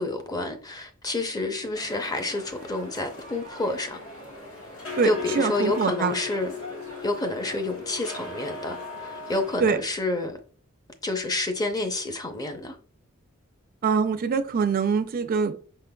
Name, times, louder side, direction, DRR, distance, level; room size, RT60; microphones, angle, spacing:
voice 1, 0.0-4.0 5.0-6.5 7.0-10.4 11.0-12.8, left 2 dB, 20° left, 0.5 m, -29 dB
sound 1, 1.7-9.6, left 4 dB, 70° left, 1.5 m, -38 dB
voice 2, 5.3-6.1 9.6-9.8 13.8-15.6, right 5 dB, 45° right, 0.3 m, -24 dB
5.7 x 3.7 x 2.2 m
head